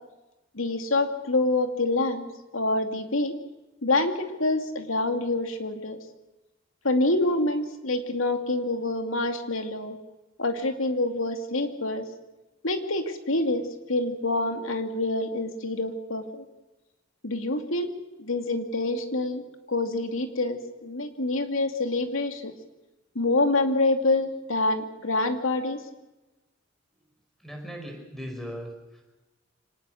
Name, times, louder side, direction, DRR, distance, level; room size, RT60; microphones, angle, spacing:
voice 1, 0.5-2.3 2.5-3.3 3.8-6.0 6.8-10.0 10.4-12.0 12.6-13.6 13.9-16.4 17.2-17.9 18.2-22.5 23.1-25.8, left 2 dB, 90° left, 6 dB, 2.5 m, -26 dB
voice 2, 27.4-29.0, equal, ahead, 2 dB, 5.0 m, -38 dB
25.5 x 19.5 x 6.4 m, 1.1 s
head